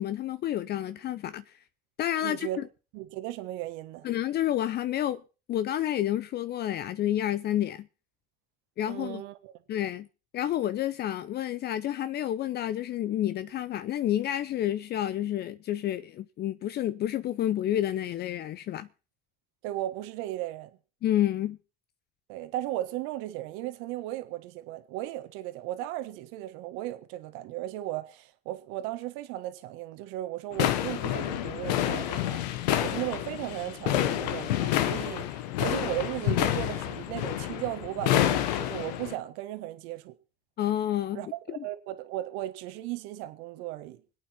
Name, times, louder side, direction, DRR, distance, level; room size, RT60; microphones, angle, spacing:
voice 1, 0.0-1.6 2.0-2.7 4.0-5.2 5.5-7.9 8.8-9.2 9.7-10.1 10.3-18.9 21.0-21.6 40.6-41.2 41.5-41.6, left 12 dB, 50° left, 0.7 m, -29 dB
voice 2, 2.2-2.6 2.9-4.1 8.9-9.5 19.6-20.7 22.3-32.4 32.8-40.1 41.1-44.0, right 15 dB, 75° right, 1.5 m, -36 dB
sound 1, 30.5-39.1, left 12 dB, 85° left, 1.2 m, -28 dB
25.5 x 8.8 x 4.4 m
hypercardioid pair, 70°, 21 cm